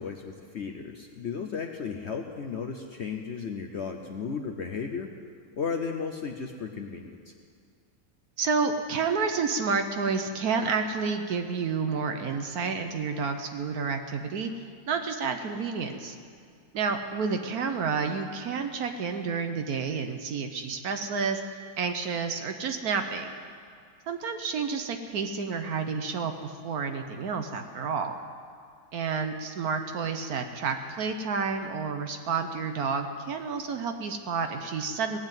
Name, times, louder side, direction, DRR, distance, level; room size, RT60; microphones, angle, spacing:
voice 1, 0.0-5.1 5.6-7.3, left 5 dB, 55° left, 3 dB, 0.9 m, -34 dB
voice 2, 8.4-14.5 14.9-16.2 16.7-21.4 21.8-23.3 24.1-28.2 28.9-35.2, right 5 dB, 70° right, 6 dB, 1.3 m, -30 dB
18.5 x 7.7 x 9.0 m, 2.3 s
omnidirectional pair, 1.7 m